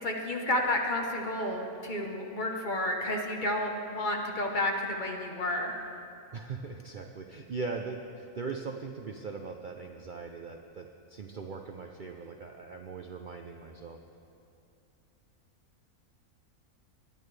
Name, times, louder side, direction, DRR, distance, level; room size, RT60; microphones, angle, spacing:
voice 1, 0.0-5.7, left 1 dB, 35° left, 1 dB, 1.0 m, -31 dB
voice 2, 6.3-14.0, right 4 dB, 80° right, 4 dB, 0.4 m, -40 dB
19.5 x 10.5 x 3.2 m, 2.6 s
omnidirectional pair, 1.6 m